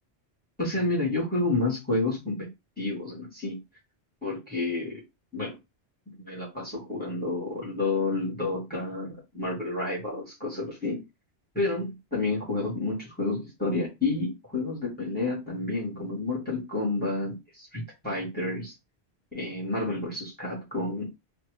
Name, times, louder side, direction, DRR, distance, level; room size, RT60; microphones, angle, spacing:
voice 1, 0.6-2.5 2.8-3.6 4.2-5.0 5.3-5.5 6.1-11.0 11.5-18.7 19.3-21.1, left 2 dB, 10° left, 1.3 m, -30 dB
2.7 x 2.5 x 3.2 m
omnidirectional pair, 1.1 m